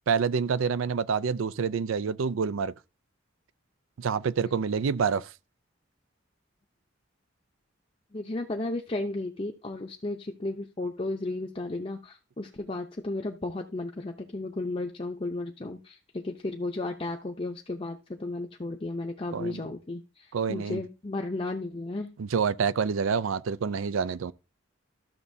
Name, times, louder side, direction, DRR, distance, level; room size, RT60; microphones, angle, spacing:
voice 1, 0.1-2.7 4.0-5.3 19.3-19.6 20.3-20.8 22.2-24.3, right 6 dB, 85° right, 0.4 m, -27 dB
voice 2, 8.1-22.2, left 2 dB, 30° left, 0.6 m, -34 dB
13.5 x 6.7 x 2.7 m
head